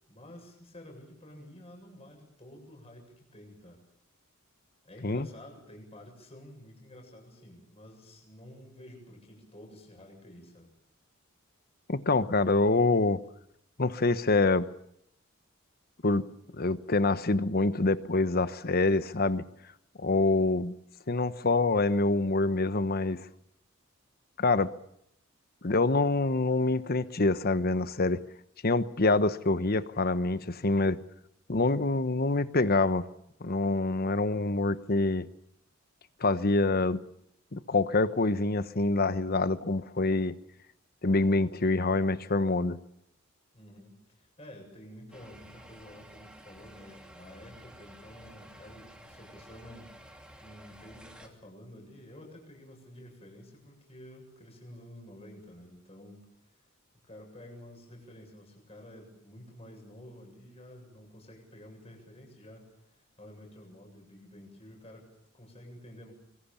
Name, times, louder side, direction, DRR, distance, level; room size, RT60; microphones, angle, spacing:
voice 1, 0.1-3.8 4.8-10.7 43.5-49.9 50.4-56.6 57.0-66.1, left 1 dB, 30° left, 2 dB, 7.7 m, -50 dB
voice 2, 11.9-13.2 13.8-14.7 16.0-16.2 16.5-19.4 20.0-20.7 21.1-23.3 24.4-24.7 25.6-28.2 28.6-31.0 31.5-33.0 33.4-35.3 36.2-37.0 37.5-40.4 41.0-42.8, left 3 dB, 45° left, 13 dB, 1.1 m, -26 dB
sound 1, 45.1-51.3, right 1 dB, 5° right, 2.7 m, -52 dB
25.0 x 23.5 x 7.2 m, 0.74 s
head